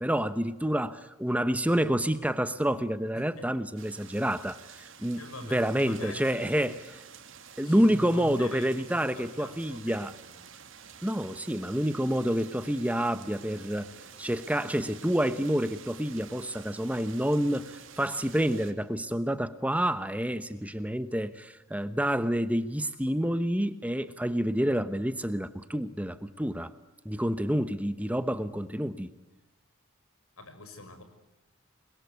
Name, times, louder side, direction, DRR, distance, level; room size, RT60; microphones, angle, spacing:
voice 1, 0.0-5.2 5.5-6.8 7.6-10.1 11.0-13.9 14.2-26.7 27.0-29.1, equal, 5° right, 11 dB, 0.9 m, -28 dB
voice 2, 3.1-3.5 5.2-6.8 7.6-10.4 30.4-31.0, left 2 dB, 80° left, 9 dB, 5.9 m, -45 dB
sound 1, 3.8-18.7, right 7 dB, 60° right, 2.8 m, -50 dB
28.5 x 22.5 x 8.1 m, 1.0 s
head